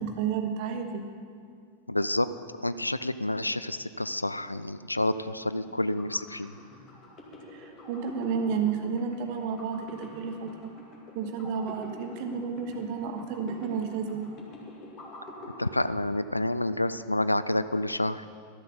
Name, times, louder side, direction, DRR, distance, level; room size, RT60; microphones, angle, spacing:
voice 1, 0.0-1.0 7.5-10.7 11.1-14.3, right 6 dB, 45° right, 6 dB, 1.2 m, -31 dB
voice 2, 1.9-2.3 2.6-6.5 15.6-18.2, left 1 dB, 85° left, 13 dB, 0.3 m, -29 dB
sound 1, 5.7-16.5, left 1 dB, 35° left, 2.1 m, -46 dB
12.5 x 7.6 x 6.9 m, 2.2 s
figure-of-eight pair, 90°, 0 cm